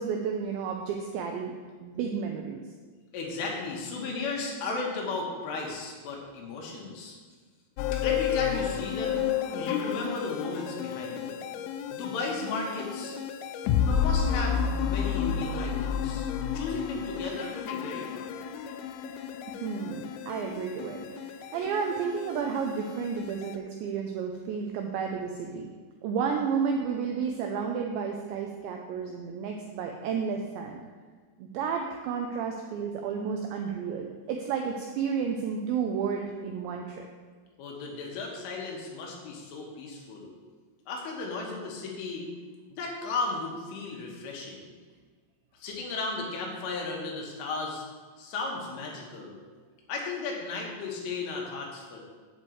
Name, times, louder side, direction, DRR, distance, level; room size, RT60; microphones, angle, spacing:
voice 1, 0.0-1.5 1.8-2.6 19.5-25.7 26.0-30.8 31.4-37.1, right 6 dB, 85° right, 2 dB, 2.6 m, -32 dB
voice 2, 3.1-7.2 8.0-11.4 11.9-13.2 13.8-16.3 16.5-18.3 37.6-40.3 40.9-42.3 42.8-44.6 45.6-47.8 48.2-49.4 49.9-52.0, left 3 dB, 75° left, -1 dB, 3.8 m, -35 dB
sound 1, 7.8-23.6, left 8 dB, 90° left, 3.3 m, -31 dB
8.9 x 5.4 x 7.9 m, 1.5 s
omnidirectional pair, 6.0 m